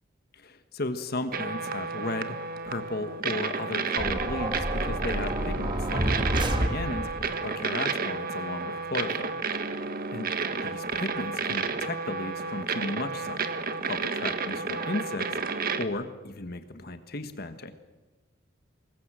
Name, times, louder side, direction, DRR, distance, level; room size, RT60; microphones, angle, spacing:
voice 1, 0.3-2.3 2.6-9.3 10.1-10.3 10.6-13.5 13.9-15.4 15.7-17.7, left 2 dB, 50° left, 9 dB, 1.4 m, -35 dB
sound 1, 1.3-15.8, right 4 dB, 50° right, 1.5 m, -31 dB
sound 2, 4.0-7.3, right 1 dB, 25° right, 1.8 m, -29 dB
25.0 x 20.5 x 7.6 m, 1.2 s
head